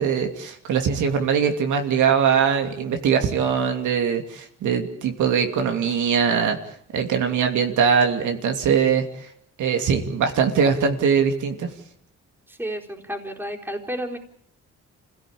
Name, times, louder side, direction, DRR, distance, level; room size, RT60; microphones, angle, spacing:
voice 1, 0.0-6.6 6.9-9.3 9.6-11.7, right 7 dB, 75° right, 4 dB, 2.9 m, -21 dB
voice 2, 12.5-14.2, equal, 5° right, 1 dB, 4.2 m, -31 dB
27.0 x 16.5 x 8.7 m, 0.67 s
cardioid pair, 90°, 30 cm